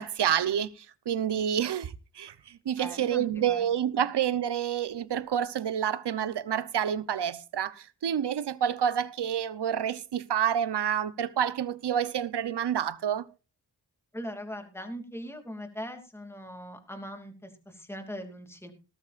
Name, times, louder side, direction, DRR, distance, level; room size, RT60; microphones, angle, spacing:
voice 1, 0.0-13.3, right 9 dB, 75° right, 0.9 m, -28 dB
voice 2, 2.8-3.7 4.0-4.1 14.1-18.7, equal, 5° left, 2.7 m, -40 dB
18.5 x 13.0 x 2.5 m
wide cardioid pair, 80°, 41 cm